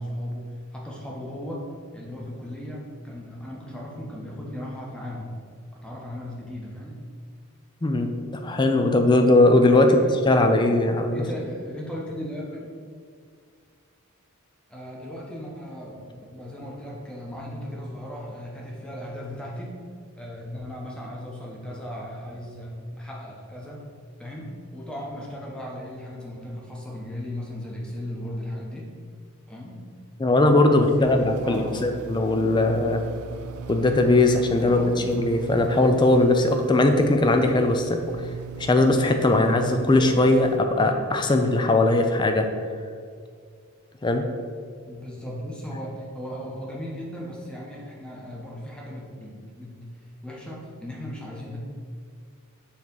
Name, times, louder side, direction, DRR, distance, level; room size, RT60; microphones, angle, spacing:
voice 1, 0.0-5.3 5.7-7.0 9.9-10.1 11.1-12.7 14.7-19.8 20.2-23.9 24.2-28.9 29.5-29.8 30.7-31.8 34.6-35.1 44.9-49.8 50.2-51.6, equal, 5° left, -3 dB, 1.0 m, -37 dB
voice 2, 8.4-10.0 10.2-11.2 30.2-33.0 33.7-34.8 35.1-38.0 38.6-42.5 44.0-44.3, left 2 dB, 20° left, 5 dB, 0.4 m, -19 dB
sound 1, 31.0-40.6, right 5 dB, 80° right, 0.4 m, -38 dB
7.1 x 3.2 x 5.4 m, 2.1 s
head